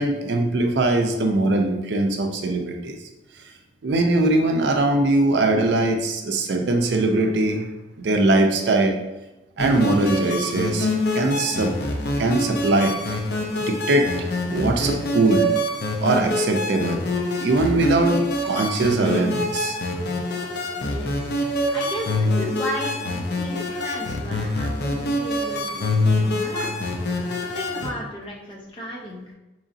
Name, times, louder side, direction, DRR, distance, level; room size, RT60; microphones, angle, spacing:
voice 1, 0.0-3.0 3.8-7.7 8.0-9.0 9.6-10.9 11.1-11.7 12.2-13.2 13.6-15.5 16.0-17.1 17.4-19.8, right 2 dB, 75° right, 4 dB, 0.5 m, -21 dB
sound 1, 9.6-27.9, left 1 dB, 65° left, 0.5 m, -25 dB
voice 2, 21.7-26.7 27.5-29.2, equal, 30° left, -3 dB, 0.7 m, -34 dB
3.9 x 3.1 x 2.6 m, 1.0 s
head